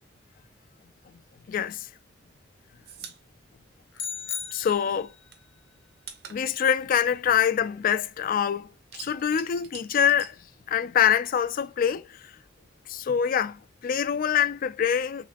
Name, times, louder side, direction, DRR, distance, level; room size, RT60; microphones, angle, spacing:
voice 1, 1.5-1.9 4.5-5.1 6.3-8.7 8.9-10.3 10.7-12.2 12.9-15.3, left 8 dB, 50° left, 0.3 m, -25 dB
sound 1, 2.3-4.6 4.9-8.2 8.5-11.1 11.4-12.5, right 7 dB, 60° right, 0.9 m, -47 dB
sound 2, 3.9-5.3, left 7 dB, 90° left, 0.8 m, -36 dB
5.0 x 3.3 x 2.5 m
head